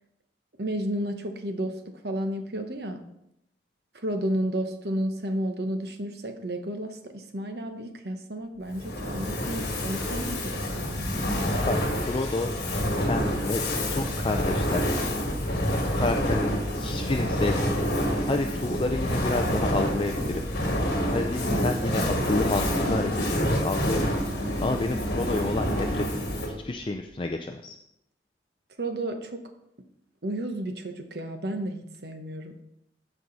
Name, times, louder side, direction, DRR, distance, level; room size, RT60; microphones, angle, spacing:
voice 1, 0.6-3.0 3.9-11.0 28.8-29.4 30.2-32.6, right 1 dB, 60° right, 6 dB, 1.1 m, -32 dB
Fire, 8.7-26.7, equal, 60° left, 2.0 m, -27 dB
voice 2, 11.7-12.5 13.0-13.6 13.9-14.8 15.9-20.5 20.8-27.8, left 2 dB, 30° left, 5 dB, 0.4 m, -30 dB
14.0 x 4.8 x 4.0 m, 0.80 s
head